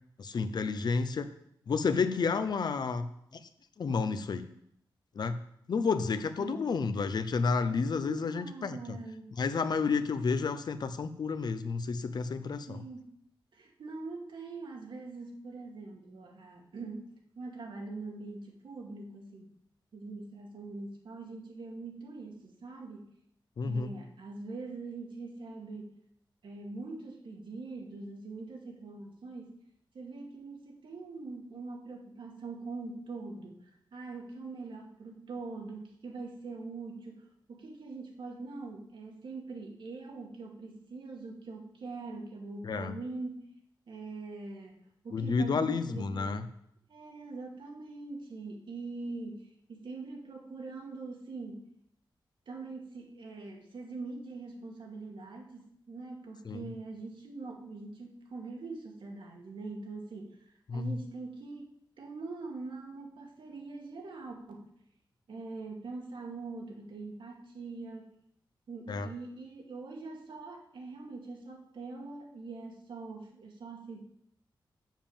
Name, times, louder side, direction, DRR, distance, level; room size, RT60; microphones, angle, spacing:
voice 1, 0.2-1.3 1.7-3.0 3.3-3.4 3.8-4.5 5.2-5.4 5.7-9.0 9.4-12.8 23.6-24.0 42.6-43.0 45.1-46.4 56.5-56.6 60.7-60.9 68.9-69.1, left 5 dB, 55° left, 11 dB, 0.7 m, -30 dB
voice 2, 6.4-6.7 8.1-9.3 12.7-13.1 13.5-19.5 19.9-23.1 23.6-26.0 26.4-29.6 29.9-43.5 43.9-46.4 46.9-51.7 52.5-60.5 60.7-64.7 65.3-68.1 68.7-74.0, right 3 dB, 75° right, 1 dB, 2.0 m, -43 dB
7.3 x 7.3 x 7.1 m, 0.72 s
wide cardioid pair, 160°, 8 cm